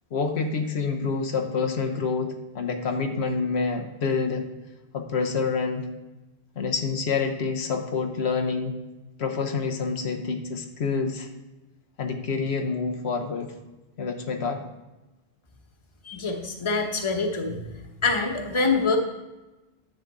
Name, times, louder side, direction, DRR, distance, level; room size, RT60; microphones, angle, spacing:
voice 1, 0.1-4.4 4.9-5.9 6.6-8.7 9.2-11.3 12.0-13.5 14.0-14.6, left 4 dB, 90° left, 4 dB, 1.2 m, -27 dB
voice 2, 16.0-17.6 18.0-19.0, left 4 dB, 30° left, 3 dB, 1.0 m, -25 dB
10.5 x 3.9 x 7.3 m, 1.1 s
omnidirectional pair, 1.1 m